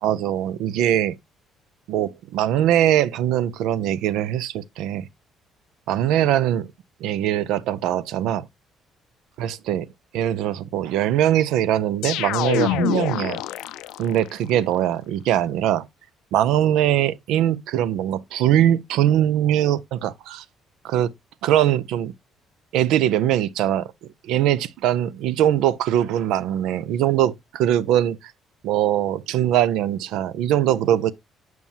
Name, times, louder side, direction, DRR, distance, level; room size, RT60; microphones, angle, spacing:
voice 1, 0.0-1.1 1.9-5.1 5.9-6.7 7.0-8.5 9.4-9.9 10.1-13.4 14.0-15.9 16.3-20.4 20.8-21.1 21.4-22.1 22.7-23.9 24.2-28.3 28.6-31.1, right 11 dB, 85° right, 0.5 m, -21 dB
sound 1, 12.0-14.3, left 14 dB, 90° left, 0.4 m, -26 dB
7.2 x 6.1 x 2.7 m
cardioid pair, 180°, 0 cm